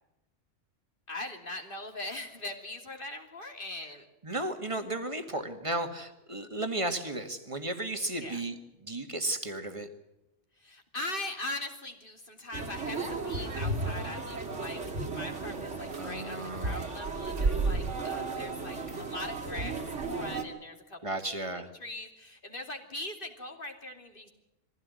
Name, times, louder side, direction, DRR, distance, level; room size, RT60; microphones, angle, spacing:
voice 1, 1.1-4.1 8.2-8.4 10.6-24.3, left 2 dB, 45° left, 3 dB, 3.1 m, -41 dB
voice 2, 4.2-8.6 8.8-9.9 16.0-16.9 21.0-21.7, right 2 dB, 25° right, 7 dB, 2.0 m, -34 dB
sound 1, 12.5-20.4, right 3 dB, 70° right, 2.6 m, -33 dB
23.0 x 16.0 x 9.6 m, 0.93 s
omnidirectional pair, 1.3 m